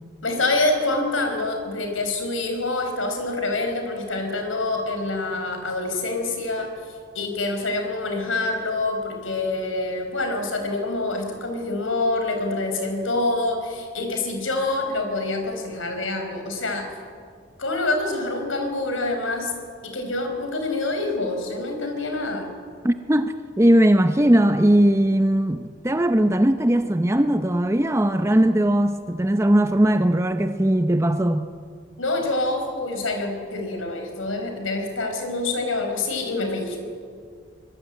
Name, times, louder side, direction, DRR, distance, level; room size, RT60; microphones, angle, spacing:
voice 1, 0.2-6.7 7.1-16.9 17.6-19.5 19.8-22.5 32.0-36.8, left 2 dB, 90° left, 5.0 m, -26 dB
voice 2, 22.8-31.5, right 1 dB, 15° right, 0.7 m, -19 dB
23.5 x 22.0 x 9.2 m
head